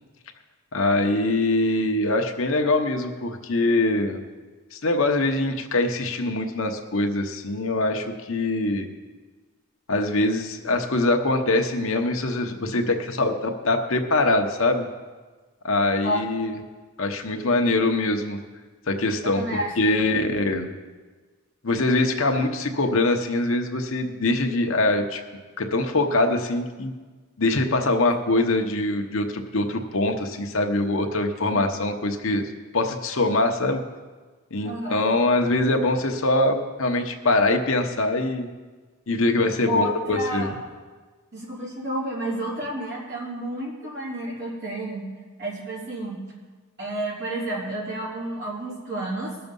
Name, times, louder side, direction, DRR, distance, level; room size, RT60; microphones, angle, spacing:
voice 1, 0.7-4.2 4.7-8.9 9.9-14.9 15.6-16.6 17.0-18.4 18.9-19.4 19.8-20.7 21.6-25.2 25.6-26.9 27.4-32.4 32.7-33.8 34.5-38.5 39.1-40.5, left 2 dB, 65° left, 4 dB, 1.0 m, -23 dB
voice 2, 19.3-19.8 34.6-35.0 39.7-40.5 41.3-45.1 45.4-46.2 46.8-49.3, equal, 50° right, -6 dB, 3.7 m, -30 dB
19.0 x 6.8 x 5.4 m, 1.4 s
head